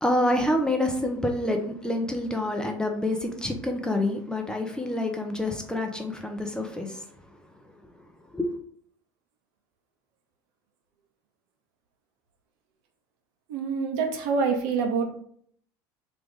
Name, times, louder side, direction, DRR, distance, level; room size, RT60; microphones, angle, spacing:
voice 1, 0.0-7.1 8.3-8.6, left 1 dB, 5° left, 0.7 m, -27 dB
voice 2, 13.5-15.1, right 5 dB, 70° right, 0.8 m, -26 dB
3.4 x 2.4 x 3.7 m
hypercardioid pair, 85°, 12 cm